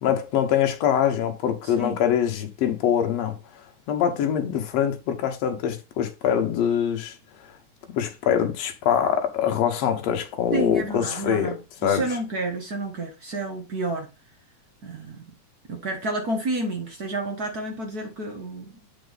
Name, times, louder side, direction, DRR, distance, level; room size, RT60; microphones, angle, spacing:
voice 1, 0.0-3.3 3.9-7.1 8.0-11.6 11.8-12.0, left 9 dB, 65° left, 2.2 m, -24 dB
voice 2, 1.6-2.0 10.5-11.6 11.8-14.1 14.8-15.2 15.7-18.7, right 2 dB, 55° right, 1.0 m, -30 dB
8.1 x 4.6 x 4.0 m
omnidirectional pair, 3.4 m